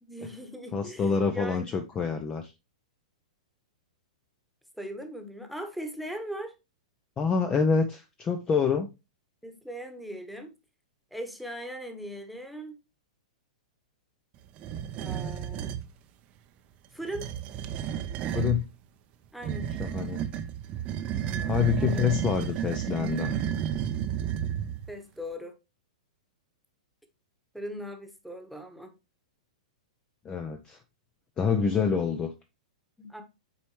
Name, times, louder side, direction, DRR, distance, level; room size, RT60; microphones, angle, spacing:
voice 1, 0.0-1.8 4.8-6.5 9.4-10.5 11.1-12.8 15.0-15.7 16.9-17.3 19.3-19.7 21.2-22.0 24.9-25.5 27.5-28.9 33.0-33.2, equal, ahead, 1.3 m, -39 dB
voice 2, 0.7-2.5 7.2-8.9 18.3-18.7 19.8-20.2 21.5-23.3 30.2-30.8 31.4-32.3, left 6 dB, 20° left, 0.6 m, -26 dB
sound 1, 14.6-15.9 17.0-18.6 19.4-24.9, right 9 dB, 35° right, 0.7 m, -32 dB
8.3 x 4.3 x 3.1 m
figure-of-eight pair, 105°, 4 cm